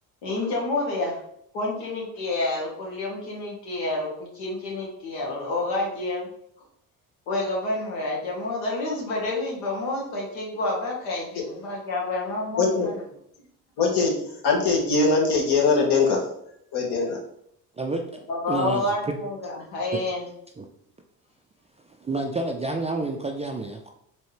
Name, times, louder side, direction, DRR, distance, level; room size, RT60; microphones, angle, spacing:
voice 1, 0.2-1.2 1.5-6.3 7.3-12.9 18.3-20.2, left 2 dB, 75° left, -2 dB, 1.4 m, -29 dB
voice 2, 12.6-12.9 13.8-16.3 16.7-17.2, left 4 dB, 60° left, 0 dB, 1.4 m, -22 dB
voice 3, 18.5-19.2 20.6-20.7 22.0-23.9, right 3 dB, 15° right, 3 dB, 0.3 m, -29 dB
4.2 x 2.7 x 3.2 m, 0.71 s
hypercardioid pair, 55°, 46 cm